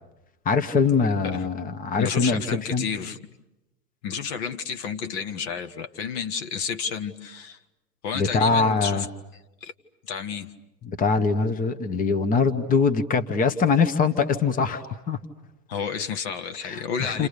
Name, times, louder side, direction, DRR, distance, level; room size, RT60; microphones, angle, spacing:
voice 1, 0.4-2.8 8.1-9.1 10.8-15.2 16.6-17.3, left 5 dB, 15° left, 9 dB, 1.5 m, -23 dB
voice 2, 2.0-3.3 4.0-7.6 8.0-9.1 9.6-9.7 10.0-10.5 15.7-17.3, left 6 dB, 40° left, 7 dB, 1.6 m, -31 dB
30.0 x 29.0 x 6.8 m, 0.97 s
figure-of-eight pair, 110°, 48 cm